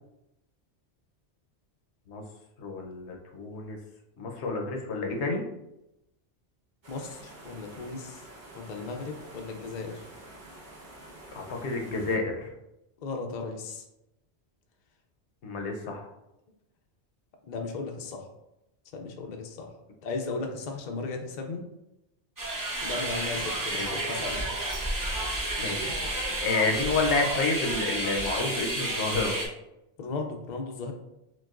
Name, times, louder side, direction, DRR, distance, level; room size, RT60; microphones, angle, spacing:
voice 1, 2.6-3.8 4.2-5.4 11.3-12.5 15.4-16.0 23.4-23.9 25.6-29.4, left 3 dB, 80° left, 2 dB, 1.0 m, -30 dB
sound 1, 6.8-12.2, right 1 dB, 45° right, 1.0 m, -48 dB
voice 2, 6.9-8.2 8.5-10.0 13.0-13.8 17.5-18.2 18.9-19.7 20.0-21.6 22.8-24.5 26.3-26.4 26.6-26.7 30.0-30.9, left 3 dB, 50° left, 3 dB, 0.6 m, -36 dB
sound 2, 22.4-29.5, right 1 dB, 20° right, 0.6 m, -31 dB
6.0 x 2.3 x 2.4 m, 0.89 s
omnidirectional pair, 1.1 m